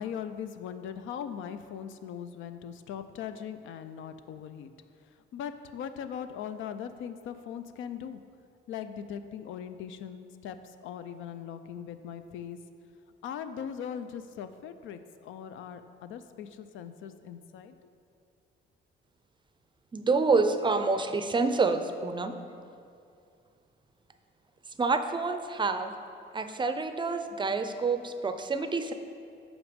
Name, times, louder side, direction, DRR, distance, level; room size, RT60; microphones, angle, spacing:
voice 1, 0.0-4.7 5.3-8.2 8.7-10.6 10.8-12.6 13.2-17.7, left 8 dB, 80° left, 10 dB, 0.4 m, -40 dB
voice 2, 19.9-22.4 24.8-25.9 26.3-28.9, right 4 dB, 25° right, 8 dB, 0.4 m, -27 dB
5.9 x 5.3 x 5.0 m, 2.4 s
cardioid pair, 90°, 20 cm